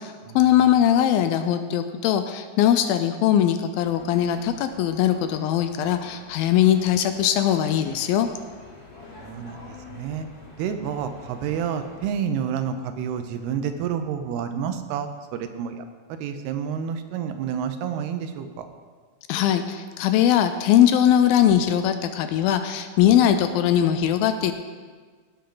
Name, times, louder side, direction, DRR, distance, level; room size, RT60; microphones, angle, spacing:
voice 1, 0.0-8.3 19.3-24.5, left 10 dB, 80° left, 9 dB, 2.3 m, -20 dB
sound 1, 3.7-12.1, left 3 dB, 65° left, 6.3 m, -46 dB
voice 2, 9.2-10.3 10.6-18.7, right 8 dB, 85° right, 8 dB, 2.8 m, -29 dB
17.5 x 8.5 x 3.9 m, 1.5 s
omnidirectional pair, 4.5 m